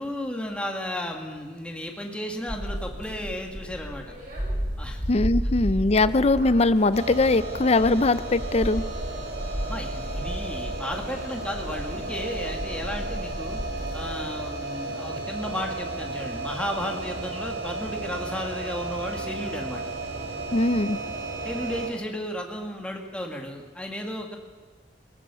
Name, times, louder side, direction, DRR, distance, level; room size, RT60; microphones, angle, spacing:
voice 1, 0.0-4.0 4.8-5.0 6.0-6.1 9.7-13.6 13.9-19.8 21.4-24.4, left 1 dB, 5° left, 1 dB, 2.0 m, -34 dB
sound 1, 2.5-14.3, equal, 50° right, 7.7 m, -33 dB
voice 2, 5.1-8.8 20.5-21.0, left 2 dB, 35° left, 15 dB, 0.6 m, -21 dB
sound 2, 6.9-21.9, right 2 dB, 85° right, 4.5 m, -34 dB
21.0 x 18.0 x 6.9 m, 1.5 s
head